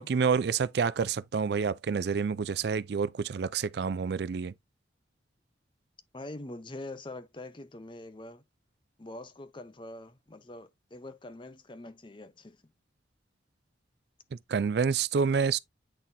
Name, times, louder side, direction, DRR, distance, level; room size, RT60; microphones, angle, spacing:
voice 1, 0.0-4.5 14.5-15.6, right 5 dB, 60° right, 0.4 m, -28 dB
voice 2, 6.1-8.4 9.0-12.6, left 2 dB, 25° left, 0.6 m, -44 dB
8.9 x 4.1 x 2.6 m
head